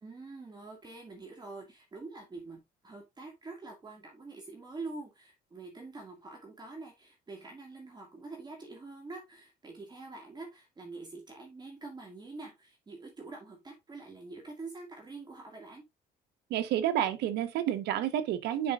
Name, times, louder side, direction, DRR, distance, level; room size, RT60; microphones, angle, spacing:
voice 1, 0.0-15.8, right 3 dB, 25° right, 2.2 m, -45 dB
voice 2, 16.5-18.7, right 11 dB, 80° right, 1.3 m, -30 dB
10.0 x 5.2 x 2.5 m
cardioid pair, 110°, 17 cm